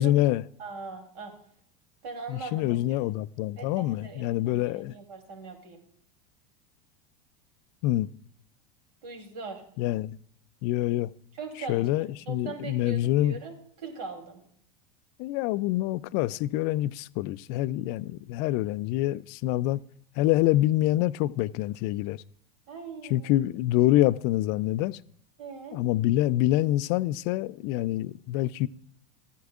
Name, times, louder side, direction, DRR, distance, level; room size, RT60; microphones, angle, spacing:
voice 1, 0.0-0.4 2.3-5.0 7.8-8.1 9.8-10.2 10.6-11.1 11.7-13.4 15.2-19.8 20.1-22.2 23.1-25.0 25.7-28.7, left 15 dB, 55° left, 0.4 m, -26 dB
voice 2, 0.6-1.3 2.0-3.0 3.6-5.8 9.0-9.6 11.4-14.4 22.7-23.3 25.4-25.8, right 4 dB, 70° right, 3.1 m, -40 dB
14.0 x 9.4 x 2.4 m
hypercardioid pair, 105°, 21 cm